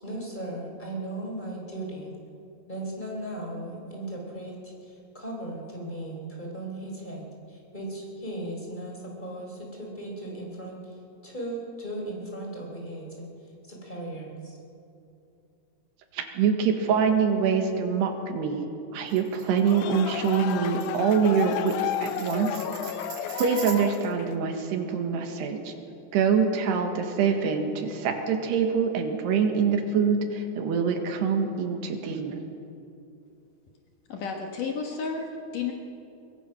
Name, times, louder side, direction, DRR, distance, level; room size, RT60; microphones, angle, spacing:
voice 1, 0.0-2.1 2.7-11.0 11.2-13.3 13.6-14.6, right 1 dB, 10° left, -1 dB, 3.8 m, -37 dB
voice 2, 16.1-18.7 18.9-22.6 23.3-25.7 26.1-32.4, right 6 dB, 85° right, 5 dB, 3.7 m, -25 dB
Tambourine, 19.1-24.1, right 8 dB, 60° right, 3.1 m, -43 dB
sound 1, 19.5-24.5, left 10 dB, 80° left, 1.8 m, -33 dB
voice 3, 34.1-35.7, left 5 dB, 65° left, 2 dB, 2.5 m, -32 dB
22.5 x 22.0 x 6.0 m, 2.7 s
omnidirectional pair, 4.7 m